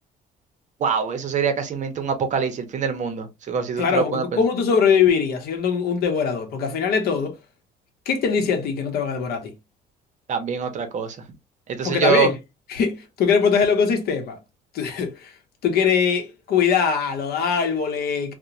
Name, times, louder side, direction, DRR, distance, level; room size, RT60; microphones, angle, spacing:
voice 1, 0.8-4.4 10.3-11.2 11.7-12.3, right 6 dB, 45° right, 0.6 m, -24 dB
voice 2, 3.8-7.4 8.1-9.5 11.8-12.4 12.7-14.4 14.7-15.3 15.6-18.3, left 6 dB, 65° left, 0.7 m, -22 dB
2.8 x 2.1 x 2.4 m
cardioid pair, 110°, 17 cm